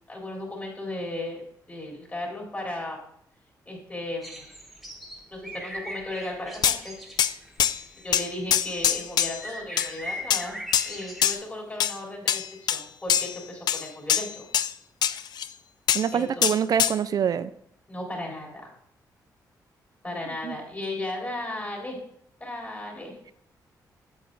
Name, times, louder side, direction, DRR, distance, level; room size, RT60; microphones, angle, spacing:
voice 1, 0.1-1.4 1.7-3.0 3.7-4.5 5.3-7.0 8.0-10.6 10.8-12.4 12.7-14.5 16.1-16.5 17.9-18.7 20.0-22.0 22.4-23.3, left 1 dB, 25° left, -2 dB, 3.8 m, -35 dB
sound 1, 4.2-11.3, equal, ahead, 1.4 m, -40 dB
sound 2, 6.6-6.8 7.2-7.3 7.6-7.8 8.1-9.4 9.8-9.9 10.3-10.4 10.7-11.4 11.8-12.0 12.3-12.8 13.1-13.4 13.7-14.7 15.0-15.5 15.9-16.1 16.4-17.0, left 9 dB, 75° left, 0.4 m, -24 dB
voice 2, 15.9-17.5 20.4-20.5, right 8 dB, 60° right, 14 dB, 0.4 m, -25 dB
8.5 x 7.9 x 4.0 m, 0.72 s
cardioid pair, 90°, 7 cm